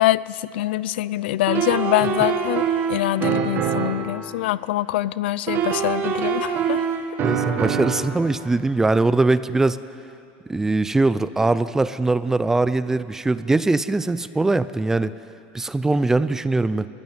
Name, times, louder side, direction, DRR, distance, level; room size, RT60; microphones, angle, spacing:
voice 1, 0.0-6.8, left 15 dB, 80° left, 18 dB, 0.6 m, -24 dB
sound 1, 1.5-4.1 5.5-8.1, right 7 dB, 35° right, 1.9 m, -24 dB
voice 2, 7.2-9.8 10.5-15.1 15.5-16.9, right 2 dB, 10° right, 15 dB, 0.5 m, -21 dB
22.0 x 15.5 x 9.1 m, 2.7 s
supercardioid pair, 150°, 6 cm